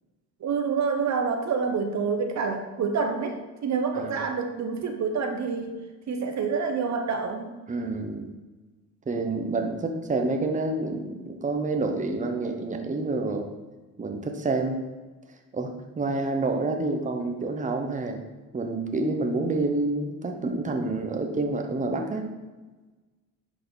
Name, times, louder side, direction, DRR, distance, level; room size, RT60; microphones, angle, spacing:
voice 1, 0.4-5.7 6.1-7.5, right 5 dB, 50° right, 5 dB, 1.0 m, -27 dB
voice 2, 7.7-8.3 9.1-13.5 14.0-14.8 15.5-15.7 16.0-18.2 18.5-22.3, right 3 dB, 20° right, 4 dB, 1.0 m, -28 dB
10.5 x 4.3 x 4.0 m, 1.2 s
cardioid pair, 100°, 35 cm